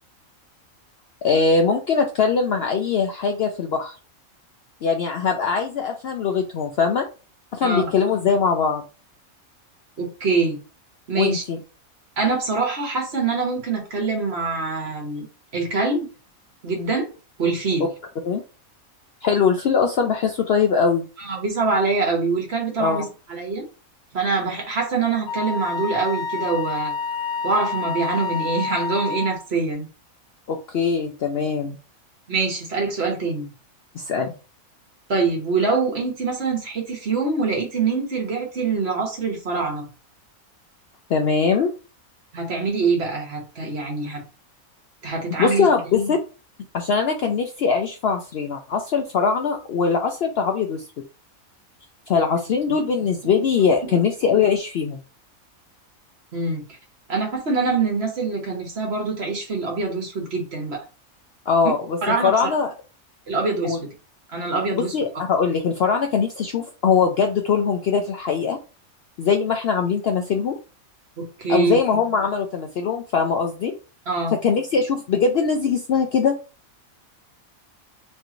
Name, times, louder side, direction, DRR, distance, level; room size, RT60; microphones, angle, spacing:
voice 1, 1.2-4.0 4.8-7.1 7.5-8.8 11.2-11.6 18.2-18.4 19.2-21.0 22.8-23.0 30.5-31.8 33.9-34.3 41.1-41.7 45.4-46.2 46.7-50.8 52.1-55.0 61.5-62.7 63.6-63.8 64.7-68.6 69.2-70.6 71.5-73.7 74.4-76.4, left 5 dB, 65° left, 4 dB, 0.6 m, -21 dB
voice 2, 10.0-10.6 11.1-11.4 12.2-15.3 15.5-16.1 16.6-17.1 17.4-17.9 21.2-23.6 24.1-26.9 27.4-29.9 32.3-33.5 35.1-39.8 42.3-44.2 45.0-45.7 53.3-53.4 53.9-54.0 56.3-56.6 57.1-60.8 62.0-62.5 63.3-63.8 64.3-64.9 71.2-71.8 74.1-74.4, right 4 dB, 50° right, 2 dB, 1.3 m, -24 dB
Wind instrument woodwind instrument, 25.3-29.5, left 4 dB, 90° left, 1.2 m, -28 dB
3.2 x 3.1 x 3.7 m, 0.33 s
omnidirectional pair, 1.5 m